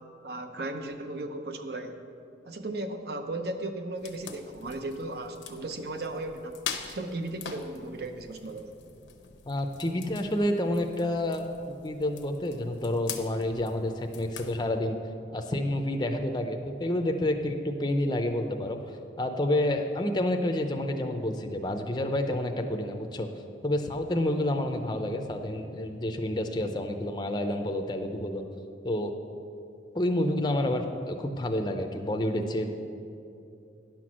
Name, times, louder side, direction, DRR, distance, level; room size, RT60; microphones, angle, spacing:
voice 1, 0.0-2.0 2.4-6.6 6.9-8.7, right 2 dB, 60° right, 7 dB, 0.7 m, -36 dB
sound 1, 4.0-14.7, left 7 dB, 85° left, 0.8 m, -44 dB
voice 2, 9.5-15.0 15.3-18.8 19.2-23.3 23.6-28.4 28.8-29.1 29.9-32.7, left 1 dB, 25° left, 5 dB, 0.5 m, -29 dB
10.0 x 6.0 x 6.2 m, 2.6 s
head